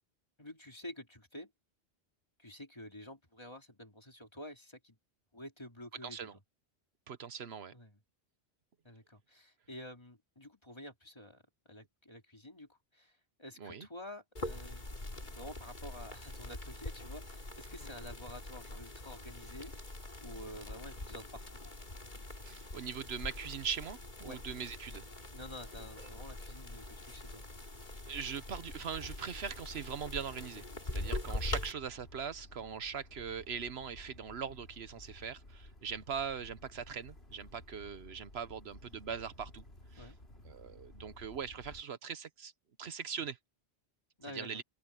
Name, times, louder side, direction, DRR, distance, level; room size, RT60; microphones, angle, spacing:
voice 1, 0.4-1.5 2.4-5.0 5.3-6.3 7.7-8.0 8.8-19.7 20.2-21.6 24.2-24.4 25.3-27.4 40.0-40.2 44.2-44.6, left 1 dB, 25° left, 2.8 m, -49 dB
voice 2, 6.0-6.4 7.1-7.7 13.6-13.9 22.4-25.1 28.1-30.6 30.9-39.6 39.9-40.1 40.4-42.5 42.8-43.4 44.2-44.6, right 7 dB, 70° right, 1.1 m, -41 dB
sound 1, 14.4-31.7, left 1 dB, 45° left, 3.0 m, -43 dB
sound 2, 28.5-41.8, left 1 dB, 70° left, 5.1 m, -55 dB
omnidirectional pair, 1.1 m